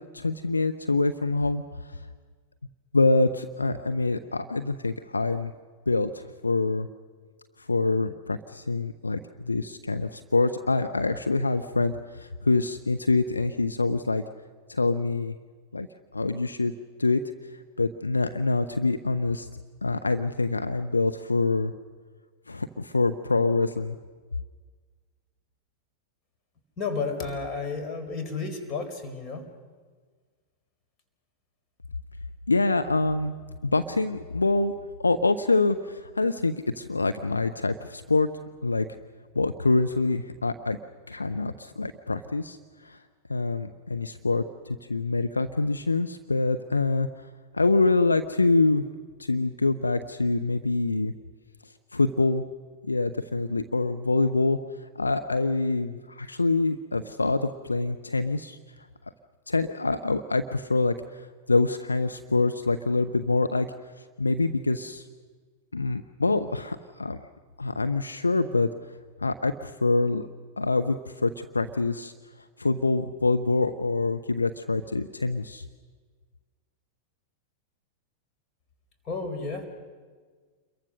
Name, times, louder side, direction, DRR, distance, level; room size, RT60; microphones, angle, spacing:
voice 1, 0.1-1.6 1.9-2.0 2.9-5.5 5.9-6.9 7.7-9.2 9.5-14.2 14.7-15.3 15.7-15.9 16.1-16.7 17.0-17.2 17.8-19.5 19.8-21.7 22.5-23.9 32.5-33.3 33.6-34.7 35.0-38.3 38.6-38.8 39.3-40.8 41.1-42.6 42.8-43.0 43.3-47.1 47.5-48.8 49.2-51.1 51.9-52.4 52.8-54.6 55.0-58.6 59.5-60.9 61.5-63.7 64.2-65.0 65.7-67.2 67.6-68.7 69.2-70.3 70.6-72.1 72.6-75.6, left 3 dB, 85° left, 9 dB, 0.7 m, -25 dB
voice 2, 26.8-29.5 79.0-79.7, left 4 dB, 35° left, 5 dB, 4.3 m, -32 dB
28.5 x 22.5 x 6.5 m, 1.5 s
figure-of-eight pair, 95°, 0 cm